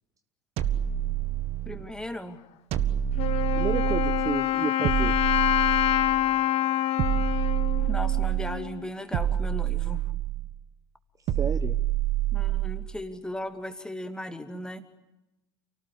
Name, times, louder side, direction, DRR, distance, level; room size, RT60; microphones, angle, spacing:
sound 1, 0.6-1.9 2.7-4.3 4.8-6.3 7.0-8.6 9.1-10.5 11.3-12.9, right 11 dB, 45° right, 1.7 m, -27 dB
voice 1, 1.6-2.4 7.8-10.0 12.3-15.0, left 1 dB, 5° left, 8 dB, 2.6 m, -37 dB
Wind instrument woodwind instrument, 3.2-8.9, left 13 dB, 45° left, 1.5 m, -26 dB
voice 2, 3.5-5.1 11.2-11.8, right 6 dB, 20° right, 12 dB, 1.1 m, -31 dB
29.0 x 18.5 x 9.8 m, 0.92 s
figure-of-eight pair, 75°, 15 cm